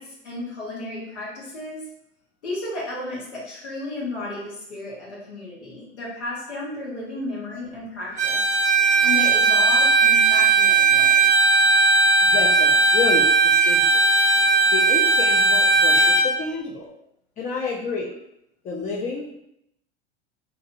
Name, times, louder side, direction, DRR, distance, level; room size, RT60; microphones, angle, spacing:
voice 1, 0.0-1.9 2.4-8.4 9.0-11.3, left 2 dB, 75° left, -6 dB, 1.1 m, -33 dB
Bowed string instrument, 8.2-16.3, right 4 dB, 25° right, 0.7 m, -17 dB
voice 2, 12.2-14.0 14.7-16.9 17.4-18.1 18.6-19.4, left 4 dB, 25° left, -2 dB, 0.4 m, -29 dB
2.9 x 2.6 x 2.6 m, 0.77 s
hypercardioid pair, 85°, 34 cm